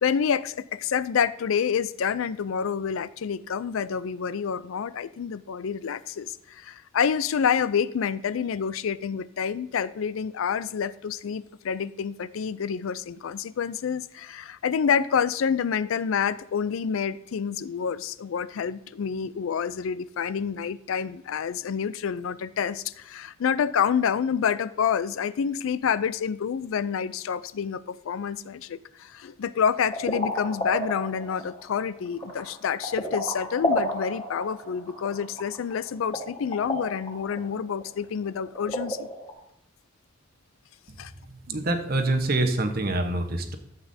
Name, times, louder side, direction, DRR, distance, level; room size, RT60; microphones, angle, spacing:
voice 1, 0.0-39.1 41.0-41.1, left 7 dB, 80° left, 0.4 m, -28 dB
sound 1, 29.9-39.3, equal, 25° left, 2.8 m, -32 dB
voice 2, 41.5-43.5, right 2 dB, 45° right, 1.0 m, -25 dB
13.5 x 8.1 x 2.7 m
head